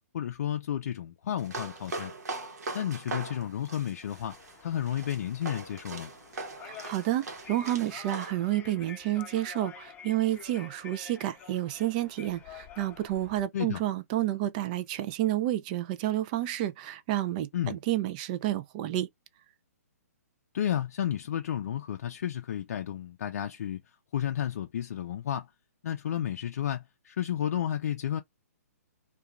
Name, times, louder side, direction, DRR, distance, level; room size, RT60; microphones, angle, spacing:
voice 1, 0.1-2.1 2.7-6.1 13.5-13.8 17.5-17.8 20.5-23.8 24.1-25.5 25.8-28.2, left 10 dB, 60° left, 0.4 m, -32 dB
sound 1, 1.4-8.3, right 3 dB, 75° right, 0.9 m, -41 dB
sound 2, 4.0-13.4, left 7 dB, 20° left, 0.9 m, -49 dB
voice 2, 6.6-19.1, right 14 dB, 30° right, 0.3 m, -30 dB
2.4 x 2.3 x 2.9 m
hypercardioid pair, 145°, 9 cm